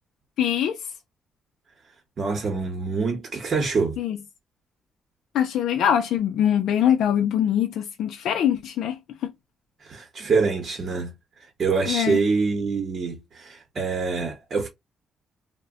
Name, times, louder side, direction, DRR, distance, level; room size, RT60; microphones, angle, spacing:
voice 1, 0.4-0.8 4.0-4.2 5.3-9.3 11.9-12.2, left 9 dB, 75° left, 0.4 m, -23 dB
voice 2, 2.2-4.0 9.8-11.1 11.6-14.7, right 4 dB, 45° right, 0.9 m, -25 dB
2.1 x 2.1 x 3.6 m
cardioid pair, 90°, 0 cm